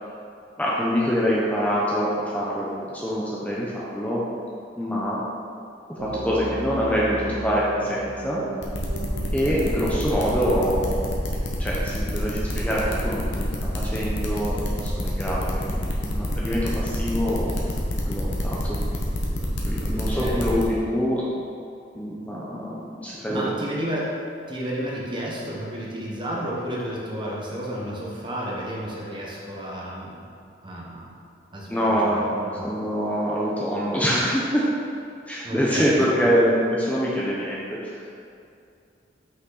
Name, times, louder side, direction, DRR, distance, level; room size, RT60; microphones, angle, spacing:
voice 1, 0.6-4.2 4.8-5.2 5.9-8.4 9.3-11.2 11.6-17.7 18.1-18.8 19.7-21.2 21.9-23.5 31.7-32.3 32.6-34.7 35.3-38.0, equal, 10° left, -6 dB, 0.7 m, -25 dB
sound 1, 6.0-11.0, right 1 dB, 70° right, 1.5 m, -34 dB
sound 2, 8.6-20.6, left 1 dB, 70° left, 1.0 m, -28 dB
voice 2, 19.9-20.5 23.3-24.1 24.5-30.3 30.6-31.1 31.5-32.7 35.4-36.4, right 1 dB, 25° right, -4 dB, 1.1 m, -32 dB
6.0 x 5.6 x 4.0 m, 2.5 s
head